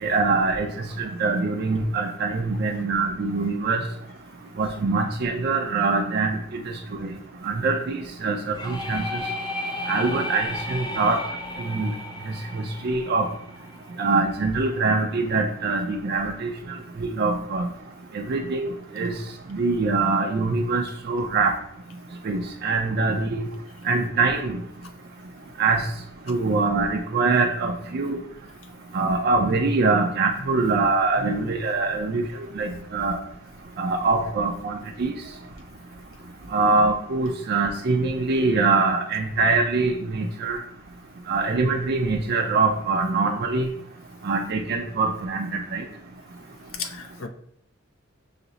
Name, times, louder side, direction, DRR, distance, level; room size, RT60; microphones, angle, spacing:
voice 1, 0.0-0.7 1.0-3.8 4.6-6.6 7.0-7.1 7.4-9.0 9.9-11.2 11.7-11.9 12.5-13.3 14.0-16.5 17.0-17.7 18.1-19.1 19.5-21.5 22.2-23.4 23.9-24.6 25.6-25.8 26.3-28.2 28.9-32.2 32.6-33.2 33.8-35.1 36.5-40.6 41.3-43.7 44.2-45.8, right 3 dB, 55° right, 3 dB, 0.4 m, -23 dB
sound 1, 8.5-14.2, left 2 dB, 20° left, 0.4 m, -34 dB
voice 2, 30.4-30.7 31.2-31.5 31.9-32.0 46.7-47.3, left 3 dB, 75° left, 7 dB, 0.5 m, -36 dB
5.8 x 2.0 x 3.9 m, 0.67 s
head